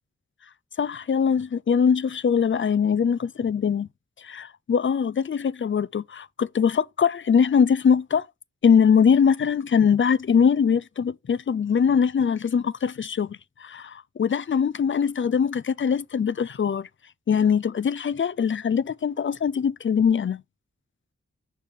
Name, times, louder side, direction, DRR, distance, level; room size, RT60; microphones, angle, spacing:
voice 1, 0.8-3.9 4.2-8.3 8.6-16.9 17.3-20.4, left 7 dB, 45° left, 0.4 m, -22 dB
6.3 x 5.3 x 3.5 m
wide cardioid pair, 50°, 29 cm